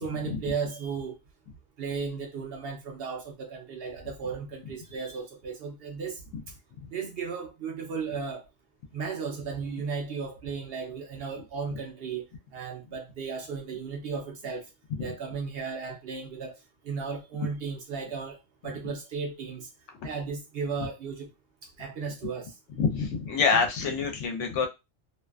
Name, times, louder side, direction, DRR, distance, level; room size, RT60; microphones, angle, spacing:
voice 1, 0.0-1.2 1.8-6.2 6.9-8.4 8.9-12.3 12.5-14.7 15.0-16.6 16.8-18.4 18.6-19.7 20.0-21.3 21.8-22.5, right 5 dB, 65° right, 0.7 m, -35 dB
voice 2, 22.8-24.7, left 5 dB, 75° left, 0.9 m, -26 dB
2.5 x 2.3 x 2.2 m
omnidirectional pair, 1.3 m